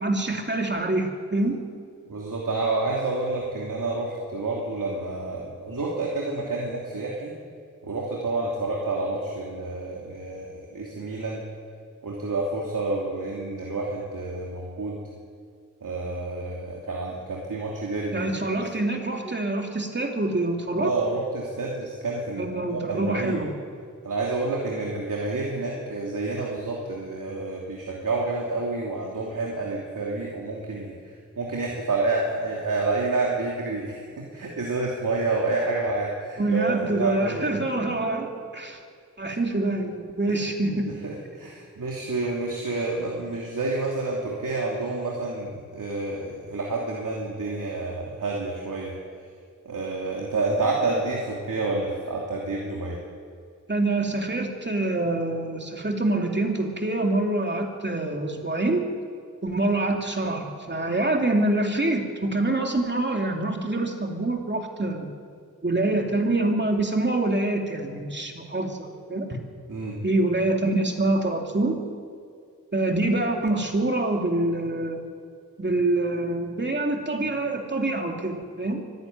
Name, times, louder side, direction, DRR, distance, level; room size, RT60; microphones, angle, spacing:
voice 1, 0.0-1.6 18.1-20.9 22.4-23.5 36.4-38.8 39.2-40.9 53.7-58.9 59.4-65.1 65.6-69.4 70.0-71.8 72.7-75.0 75.6-78.8, right 2 dB, 35° right, 2 dB, 2.8 m, -25 dB
voice 2, 2.1-7.3 7.8-11.4 12.0-15.0 15.8-18.6 20.8-23.4 24.0-30.9 31.4-36.6 36.9-37.5 41.0-49.0 49.6-53.0 69.7-70.0, right 3 dB, 80° right, -2 dB, 3.0 m, -29 dB
24.0 x 11.5 x 9.4 m, 2.2 s
wide cardioid pair, 60°, 32 cm